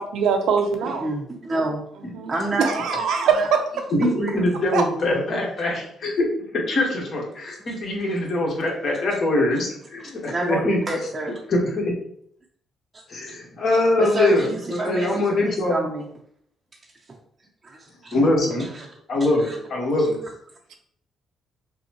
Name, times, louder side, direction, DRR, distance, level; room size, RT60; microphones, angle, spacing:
voice 1, 0.0-1.1 1.5-1.7 2.1-2.3 2.6-3.6 4.7-4.8, right 6 dB, 80° right, 5 dB, 0.6 m, -22 dB
voice 2, 0.8-1.8 2.3-3.1 3.4-3.5 4.0-4.5 7.7-7.8 10.0-11.4 12.9-13.0 14.0-15.1 15.4-16.1 17.1-17.2 17.6-18.1 18.6-18.9 19.4-19.6, right 2 dB, 30° right, -2 dB, 0.6 m, -28 dB
voice 3, 3.9-10.8 11.5-11.9 13.1-15.8 18.1-18.7 19.1-20.2, left 2 dB, 55° left, -2 dB, 1.3 m, -23 dB
5.3 x 2.1 x 3.0 m, 0.67 s
cardioid pair, 90°, 0 cm